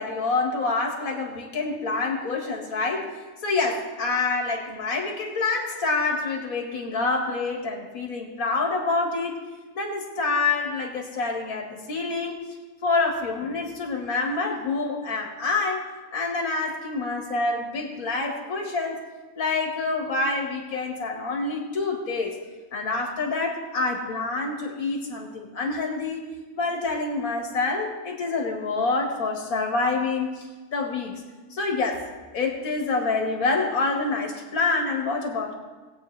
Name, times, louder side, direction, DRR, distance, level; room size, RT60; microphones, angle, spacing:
voice 1, 0.0-3.2 3.4-9.3 9.7-12.4 12.8-15.9 16.1-19.0 19.4-22.4 22.7-26.3 26.6-30.4 30.7-31.1 31.5-32.0 32.3-35.5, left 3 dB, 65° left, 1 dB, 2.1 m, -27 dB
19.5 x 8.4 x 3.3 m, 1.3 s
omnidirectional pair, 1.6 m